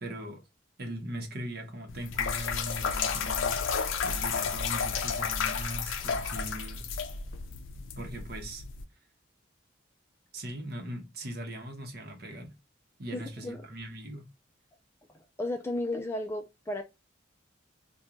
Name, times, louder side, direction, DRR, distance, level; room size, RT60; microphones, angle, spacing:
voice 1, 0.0-0.4 0.8-3.6 4.0-6.9 8.0-8.6 10.3-12.5 13.0-14.2, right 1 dB, 50° right, 0.9 m, -40 dB
sound 1, 1.9-8.8, left 6 dB, 85° left, 0.5 m, -32 dB
voice 2, 13.1-13.6 15.1-16.8, left 1 dB, 15° left, 0.3 m, -34 dB
2.8 x 2.3 x 3.6 m
head